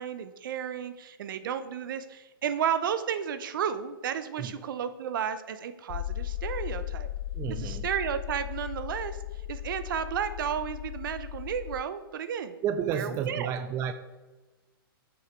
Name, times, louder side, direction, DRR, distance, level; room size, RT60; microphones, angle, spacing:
voice 1, 0.0-7.1 7.5-9.2 9.5-12.6 12.9-13.5, right 8 dB, 60° right, 11 dB, 0.8 m, -32 dB
sound 1, 5.9-11.8, left 13 dB, 50° left, 0.4 m, -36 dB
voice 2, 7.3-7.9 12.6-13.9, right 8 dB, 20° right, 9 dB, 0.4 m, -31 dB
7.3 x 6.9 x 4.5 m, 1.2 s
hypercardioid pair, 140°, 12 cm